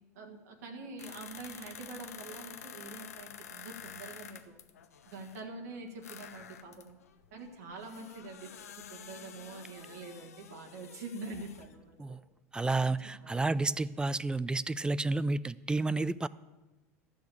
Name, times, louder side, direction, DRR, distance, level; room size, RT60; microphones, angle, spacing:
voice 1, 0.1-4.6 5.1-7.0 7.3-8.5 8.9-12.0 12.8-13.4, right 3 dB, 80° right, 0 dB, 1.7 m, -45 dB
sound 1, 1.0-5.4 6.0-11.8 12.1-12.2, left 8 dB, 90° left, 0.8 m, -49 dB
voice 2, 12.5-16.3, right 3 dB, 10° right, 18 dB, 0.4 m, -31 dB
13.0 x 6.3 x 8.6 m, 1.1 s
hypercardioid pair, 90°, 8 cm